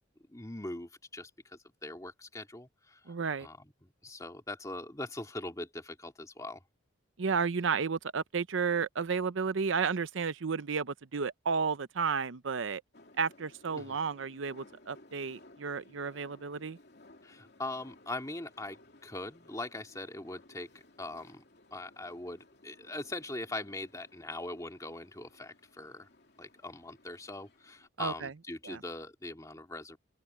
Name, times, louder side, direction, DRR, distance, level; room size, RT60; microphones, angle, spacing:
voice 1, 0.3-6.6 13.7-14.0 17.2-20.7 21.0-21.4 21.7-26.1 26.4-30.0, left 2 dB, 15° left, 2.5 m, -42 dB
voice 2, 3.1-3.5 7.2-12.8 13.2-16.8 28.0-28.3 28.6-28.8, right 5 dB, 80° right, 0.7 m, -32 dB
sound 1, 12.9-27.9, left 2 dB, 55° left, 3.0 m, -59 dB
open air
head